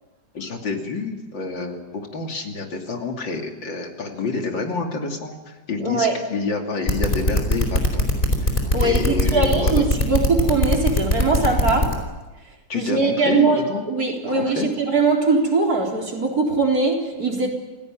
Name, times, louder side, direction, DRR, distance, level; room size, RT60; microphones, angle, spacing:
voice 1, 0.3-8.1 8.4-9.9 12.7-13.8 14.3-14.7, left 4 dB, 75° left, 3 dB, 3.5 m, -28 dB
voice 2, 5.8-6.2 8.7-12.0 12.7-17.5, right 3 dB, 50° right, 0 dB, 4.4 m, -21 dB
sound 1, 6.9-11.9, left 1 dB, 25° left, 4.5 m, -19 dB
28.5 x 17.5 x 9.1 m, 1.2 s
omnidirectional pair, 2.0 m